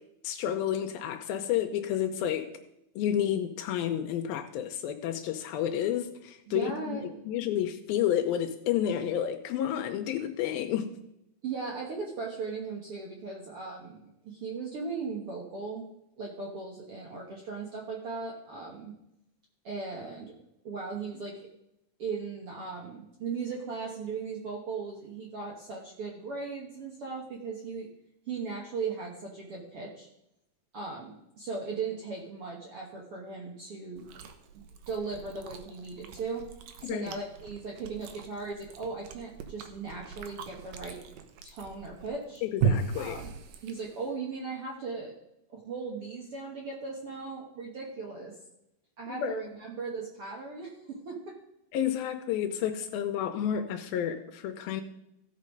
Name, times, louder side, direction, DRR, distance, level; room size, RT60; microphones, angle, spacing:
voice 1, 0.2-2.5 3.0-10.9 36.8-37.1 42.4-43.2 49.2-49.4 51.7-54.8, left 10 dB, 85° left, 6 dB, 2.5 m, -30 dB
voice 2, 6.5-7.1 11.4-15.9 16.2-18.9 19.6-20.3 20.6-21.4 22.0-27.9 28.3-30.1 30.7-34.0 34.5-36.5 36.8-41.0 41.4-42.4 42.9-43.3 43.6-45.1 45.5-48.4 49.0-51.4, right 4 dB, 55° right, -2 dB, 1.6 m, -38 dB
Chewing mastication, 34.0-44.1, right 6 dB, 70° right, 2.3 m, -37 dB
15.5 x 5.4 x 5.2 m, 0.82 s
omnidirectional pair, 4.2 m